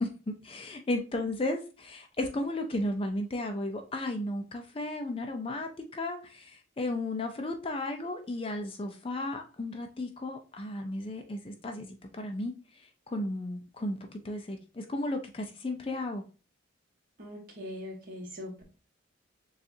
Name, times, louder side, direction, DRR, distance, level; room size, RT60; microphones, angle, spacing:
voice 1, 0.0-12.5 13.1-14.0 14.2-16.2, left 1 dB, 25° left, 0.4 m, -34 dB
voice 2, 17.2-18.6, left 1 dB, 45° right, 1.4 m, -41 dB
6.8 x 2.4 x 2.6 m
head